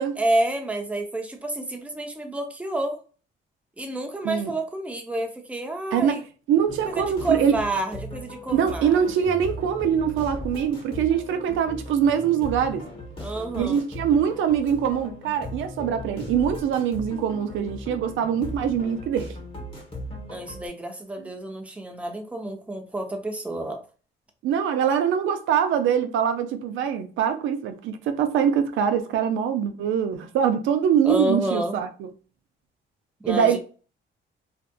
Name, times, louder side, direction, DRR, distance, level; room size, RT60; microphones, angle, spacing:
voice 1, 0.2-3.0 3.8-6.2 7.0-9.0 13.2-13.9 20.3-23.8 31.0-31.8 33.2-33.6, right 1 dB, 5° right, 0.6 m, -29 dB
voice 2, 6.5-7.6 8.5-12.8 13.5-19.4 21.2-21.3 24.4-32.1 33.3-33.6, right 8 dB, 80° right, 0.4 m, -23 dB
sound 1, 6.7-20.7, left 1 dB, 25° left, 1.0 m, -38 dB
2.6 x 2.4 x 2.2 m
cardioid pair, 90°, 20 cm